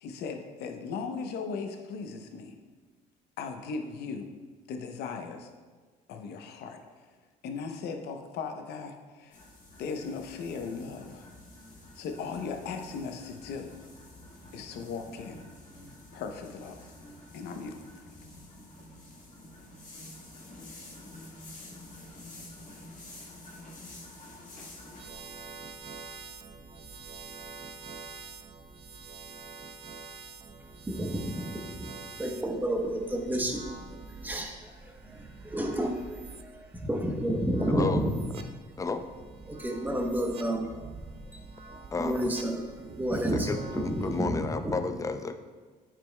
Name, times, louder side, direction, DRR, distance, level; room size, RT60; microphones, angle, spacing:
voice 1, 0.0-2.6 3.4-4.3 4.7-5.5 6.1-6.8 7.4-9.4 9.8-11.3 11.9-13.7 14.5-15.4 16.1-16.9 17.3-18.0, left 5 dB, 75° left, 5 dB, 0.7 m, -37 dB
sound 1, 9.3-25.0, left 1 dB, 50° left, 1.8 m, -49 dB
sound 2, 25.0-44.3, right 4 dB, 40° right, 0.6 m, -46 dB
voice 2, 30.9-31.9 32.2-33.6 34.2-34.6 34.8-36.0 36.4-38.1 39.5-40.7 41.3-41.4 42.0-42.6 43.0-44.7, right 1 dB, 10° right, 1 dB, 0.9 m, -30 dB
voice 3, 37.7-38.1 38.8-39.0 41.9-42.4 43.1-45.4, left 4 dB, 20° left, 9 dB, 0.4 m, -32 dB
9.2 x 5.1 x 2.2 m, 1.4 s
cardioid pair, 110°, 17 cm